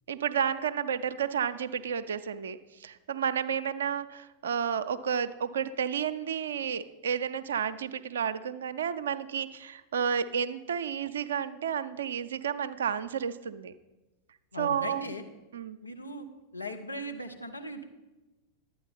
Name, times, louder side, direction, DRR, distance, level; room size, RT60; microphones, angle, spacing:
voice 1, 0.1-13.7 14.6-15.0 15.5-15.8, right 7 dB, 65° right, 11 dB, 0.4 m, -31 dB
voice 2, 14.5-15.2 15.8-16.3 16.5-17.8, equal, 85° left, 4 dB, 0.7 m, -38 dB
11.5 x 8.9 x 4.1 m, 1.1 s
figure-of-eight pair, 90°, 0 cm